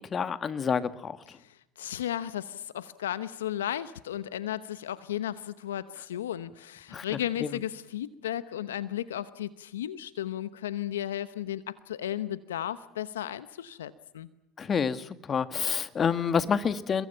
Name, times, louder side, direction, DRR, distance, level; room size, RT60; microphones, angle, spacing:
voice 1, 0.1-1.4 6.9-7.0 7.4-7.5 14.6-17.1, left 6 dB, 35° left, 11 dB, 1.8 m, -28 dB
voice 2, 1.4-14.3, left 11 dB, 85° left, 14 dB, 0.9 m, -34 dB
29.5 x 22.5 x 5.7 m, 0.82 s
hypercardioid pair, 75°, 0 cm